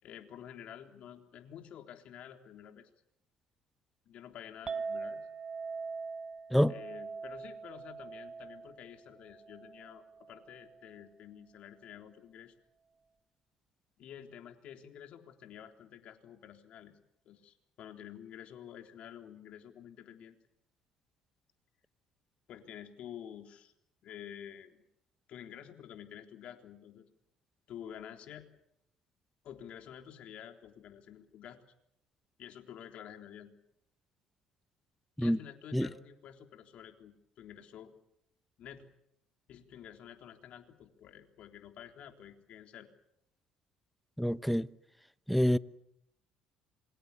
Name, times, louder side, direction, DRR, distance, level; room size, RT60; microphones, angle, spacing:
voice 1, 0.0-2.9 4.1-5.3 6.7-12.5 14.0-16.9 17.3-20.4 22.5-23.7 24.0-24.8 25.3-27.0 27.7-28.5 29.4-31.6 32.4-33.5 35.2-37.9 38.6-38.9 39.5-42.9, left 10 dB, 60° left, 3.6 m, -50 dB
Chink clink, 4.7-11.0, right 4 dB, 35° right, 1.5 m, -43 dB
voice 2, 44.2-44.7 45.3-45.6, equal, ahead, 1.0 m, -26 dB
27.5 x 24.0 x 7.1 m
hypercardioid pair, 65°, 2 cm